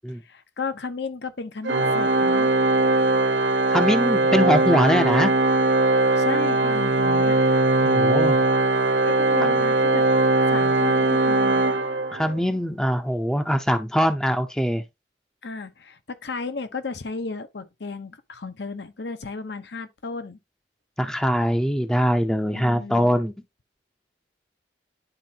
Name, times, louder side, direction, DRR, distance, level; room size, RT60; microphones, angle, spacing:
voice 1, 0.1-2.5 6.2-7.4 9.0-10.1 10.5-11.7 15.4-20.4 22.5-23.1, left 4 dB, 70° left, 0.9 m, -34 dB
Organ, 1.7-12.5, right 2 dB, 85° right, 0.8 m, -20 dB
voice 2, 3.7-5.3 7.8-8.4 12.1-14.8 21.0-23.3, equal, 5° left, 0.6 m, -22 dB
11.0 x 4.3 x 2.8 m
head